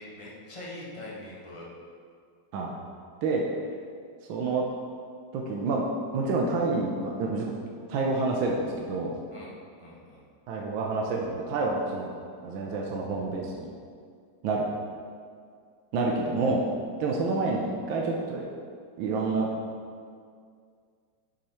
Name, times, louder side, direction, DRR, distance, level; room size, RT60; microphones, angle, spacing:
voice 1, 0.0-1.7 9.3-10.2 17.1-17.3, left 1 dB, 20° left, -5 dB, 1.0 m, -43 dB
voice 2, 4.3-4.6 5.3-5.8 6.1-7.5 7.9-9.1 10.5-12.1 12.4-13.7 14.4-14.7 15.9-16.6 17.0-18.4 19.0-19.5, right 3 dB, 85° right, -1 dB, 1.5 m, -28 dB
8.0 x 5.3 x 4.3 m, 2.2 s
omnidirectional pair, 2.1 m